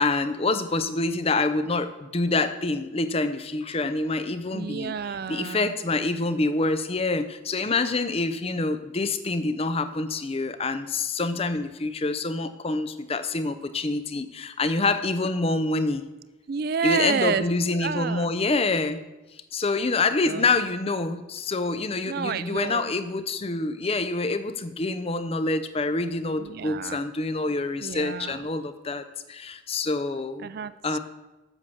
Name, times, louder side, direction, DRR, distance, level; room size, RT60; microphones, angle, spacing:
voice 1, 0.0-4.9 5.3-16.0 16.8-19.0 19.5-30.5 30.8-31.0, left 3 dB, 30° left, 11 dB, 0.5 m, -26 dB
voice 2, 4.5-5.7 16.5-17.4 17.7-18.3 20.2-20.5 22.1-22.9 26.4-27.0 27.8-28.4 30.4-31.0, right 6 dB, 45° right, 15 dB, 0.3 m, -30 dB
8.1 x 6.9 x 7.0 m, 1.1 s
head